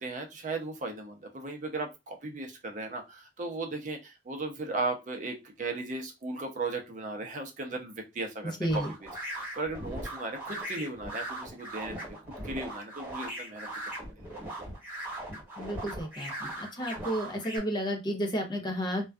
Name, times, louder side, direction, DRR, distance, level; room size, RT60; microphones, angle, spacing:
voice 1, 0.0-12.1 12.4-13.9, right 3 dB, 45° right, 3 dB, 0.5 m, -36 dB
voice 2, 8.6-8.9 15.6-19.1, equal, 25° left, 3 dB, 0.5 m, -32 dB
sound 1, 8.7-17.6, right 1 dB, 10° right, 1.4 m, -39 dB
2.5 x 2.2 x 2.2 m, 0.23 s
head